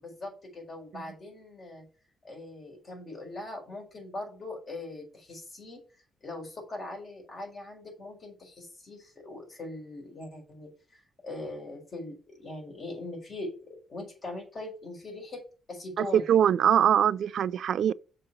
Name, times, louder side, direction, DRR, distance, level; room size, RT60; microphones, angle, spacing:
voice 1, 0.0-1.8 2.2-5.8 6.2-15.4 15.7-16.2, left 2 dB, 45° left, 4.6 m, -41 dB
voice 2, 16.0-17.9, right 9 dB, 65° right, 0.4 m, -23 dB
6.8 x 5.1 x 6.9 m
cardioid pair, 115°, 0 cm